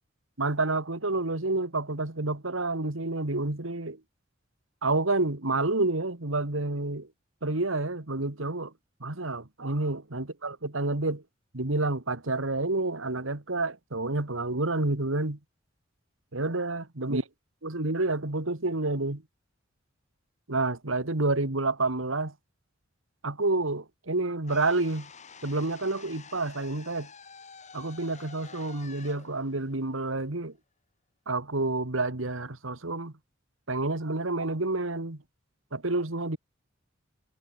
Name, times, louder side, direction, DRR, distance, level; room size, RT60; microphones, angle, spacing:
voice 1, 0.4-4.0 4.8-7.1 7.4-8.7 9.0-11.2 11.5-15.4 16.3-17.2 17.6-19.2 20.5-22.3 23.2-25.1 25.4-27.1 27.7-30.5 31.3-33.1 33.7-35.2 35.7-36.4, right 2 dB, 90° right, 2.2 m, -29 dB
sound 1, 24.4-30.6, left 5 dB, 40° left, 7.4 m, -49 dB
head